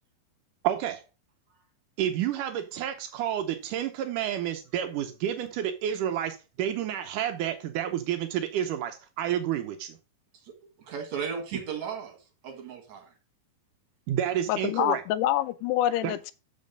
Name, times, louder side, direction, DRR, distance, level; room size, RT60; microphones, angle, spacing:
voice 1, 0.6-1.0 2.0-10.0 14.1-15.0 16.0-16.2, right 10 dB, 85° right, 1.8 m, -30 dB
voice 2, 10.4-12.2 12.4-13.1 15.9-16.0, right 7 dB, 55° right, 2.5 m, -36 dB
voice 3, 14.5-16.3, left 13 dB, 85° left, 2.7 m, -26 dB
7.6 x 6.1 x 5.2 m
omnidirectional pair, 4.8 m